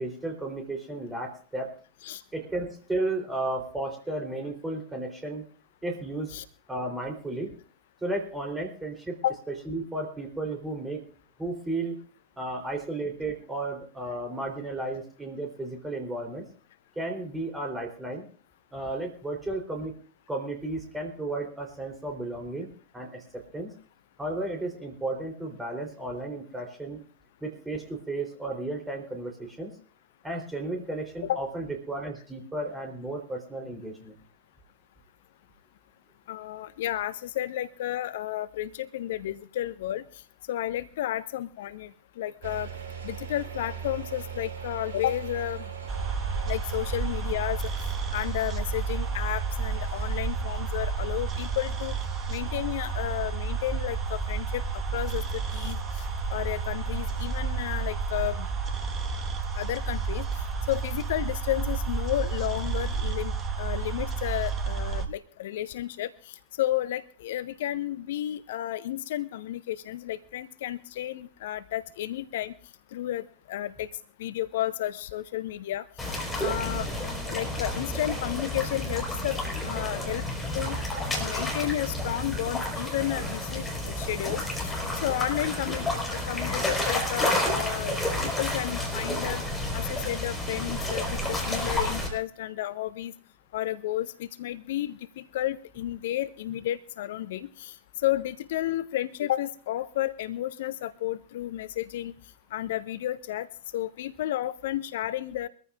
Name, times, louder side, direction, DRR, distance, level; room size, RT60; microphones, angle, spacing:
voice 1, 0.0-1.7 2.3-5.4 5.8-6.4 6.7-7.5 8.0-9.2 9.7-11.0 11.4-12.0 12.4-16.5 17.0-18.2 18.7-19.9 20.3-23.7 24.2-27.0 27.4-29.7 30.2-34.1, right 2 dB, 10° right, 2 dB, 3.6 m, -33 dB
voice 2, 36.3-40.0 40.5-42.7 43.0-45.6 46.5-47.7 48.1-51.9 52.3-54.6 54.9-56.0 56.3-58.5 59.5-63.3 63.6-72.5 72.9-73.9 74.2-76.1 76.4-76.9 77.2-80.2 80.5-80.8 81.1-84.8 85.0-89.4 89.7-93.1 93.5-97.8 98.0-102.1 102.5-103.5 103.7-105.5, left 13 dB, 55° left, 16 dB, 0.5 m, -32 dB
sound 1, 42.4-60.8, right 7 dB, 65° right, 2.2 m, -41 dB
sound 2, 45.9-65.1, right 5 dB, 25° right, 1.5 m, -31 dB
sound 3, 76.0-92.1, left 1 dB, 5° left, 4.8 m, -30 dB
23.5 x 14.0 x 2.5 m, 0.42 s
figure-of-eight pair, 90°, 0 cm